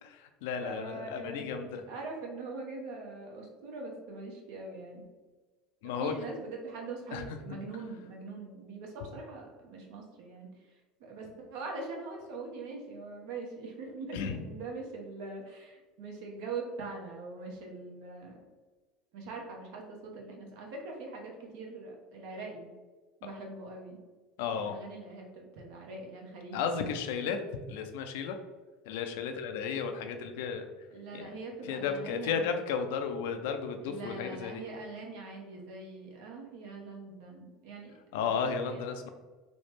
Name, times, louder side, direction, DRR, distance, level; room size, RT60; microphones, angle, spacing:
voice 1, 0.0-1.8 5.8-6.2 7.1-7.2 14.1-14.4 24.4-24.8 26.5-27.4 27.7-28.4 28.9-30.7 31.1-31.3 31.7-34.6 38.1-39.1, left 6 dB, 75° left, 6 dB, 0.3 m, -33 dB
voice 2, 0.6-5.0 5.8-18.4 19.1-22.7 23.2-24.0 24.5-26.9 30.9-32.6 33.8-38.8, right 3 dB, 70° right, 0 dB, 0.7 m, -43 dB
3.1 x 2.0 x 3.1 m, 1.3 s
hypercardioid pair, 80°, 0 cm